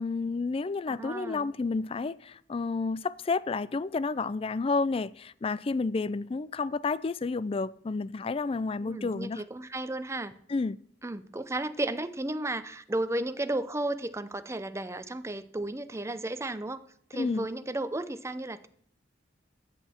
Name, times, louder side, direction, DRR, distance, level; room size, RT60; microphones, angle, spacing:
voice 1, 0.0-9.4 10.5-10.8 17.1-17.5, left 4 dB, 30° left, 0.4 m, -30 dB
voice 2, 0.9-1.5 8.8-10.3 11.0-16.8 17.1-18.7, right 2 dB, 15° right, 0.6 m, -34 dB
13.5 x 8.3 x 4.4 m
head